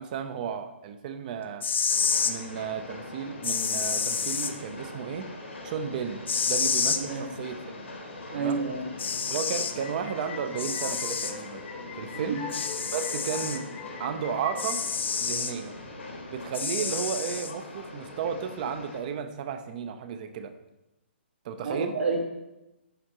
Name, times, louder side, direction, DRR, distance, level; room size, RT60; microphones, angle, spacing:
voice 1, 0.0-1.7 2.3-5.3 5.6-6.2 6.4-7.6 8.3-8.6 9.3-11.6 12.0-12.4 12.9-13.7 14.0-14.8 15.2-15.7 16.3-20.5 21.4-21.9, right 7 dB, 40° right, 9 dB, 0.6 m, -33 dB
sound 1, 1.5-2.3 3.4-4.5 6.3-7.0 8.5-8.6 9.0-9.8 10.6-11.3 12.5-13.6 14.6-15.5 16.5-17.5, left 6 dB, 65° left, 0.5 m, -28 dB
Train, 1.9-19.0, left 2 dB, 85° left, 1.9 m, -42 dB
voice 2, 7.0-7.3 8.3-8.9 12.1-12.4 16.8-16.9 21.6-22.2, right 4 dB, 75° right, 0 dB, 1.7 m, -30 dB
sound 2, 9.5-14.8, left 6 dB, 25° left, 0.6 m, -42 dB
11.0 x 4.3 x 3.0 m, 0.96 s
figure-of-eight pair, 130°, 6 cm